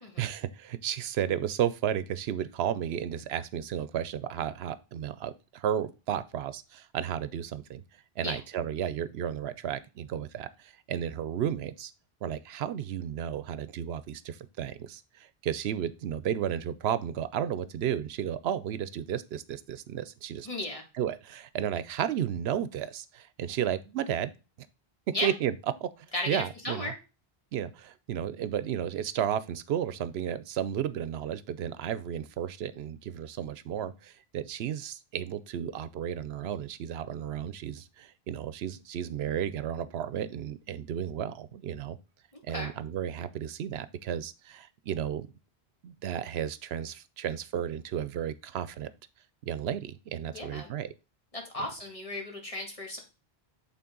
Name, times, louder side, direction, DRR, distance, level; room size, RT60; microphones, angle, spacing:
voice 1, 0.2-7.8 8.2-11.9 12.2-20.5 21.0-24.3 25.2-25.5 25.8-26.9 27.5-42.0 42.5-45.3 45.8-48.9 49.4-50.9, right 9 dB, 80° right, 15 dB, 0.8 m, -33 dB
voice 2, 20.4-20.8 25.1-25.3 26.1-26.9 42.5-42.7 50.3-50.7 51.3-53.0, left 1 dB, 35° left, 0 dB, 2.1 m, -35 dB
8.4 x 4.0 x 3.7 m, 0.30 s
omnidirectional pair, 1.1 m